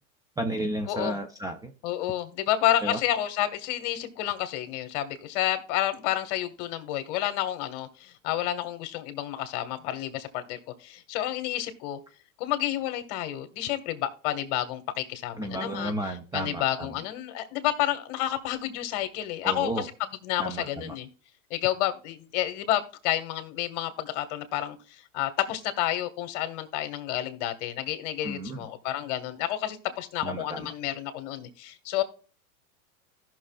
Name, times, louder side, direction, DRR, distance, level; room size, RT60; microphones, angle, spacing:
voice 1, 0.4-1.7 2.8-3.0 15.4-16.9 19.4-19.8 20.4-20.9 28.2-28.6 30.2-30.7, right 1 dB, 10° right, 5 dB, 0.5 m, -32 dB
voice 2, 0.9-1.2 1.8-12.0 12.4-19.9 20.2-21.1 21.5-32.0, left 13 dB, 55° left, 9 dB, 1.5 m, -30 dB
16.5 x 6.2 x 2.3 m, 0.40 s
hypercardioid pair, 120°, 43 cm